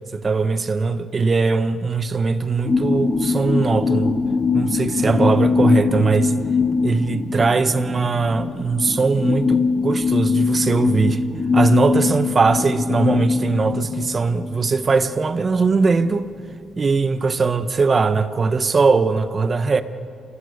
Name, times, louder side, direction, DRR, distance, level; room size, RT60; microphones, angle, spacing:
voice 1, 0.1-4.1 4.5-6.3 6.8-11.2 11.5-16.3 16.8-19.8, right 4 dB, 35° right, 1.1 m, -20 dB
sound 1, 2.6-15.7 16.1-16.2, left 4 dB, 30° left, 1.2 m, -22 dB
27.0 x 20.0 x 6.7 m
cardioid pair, 90°, 0 cm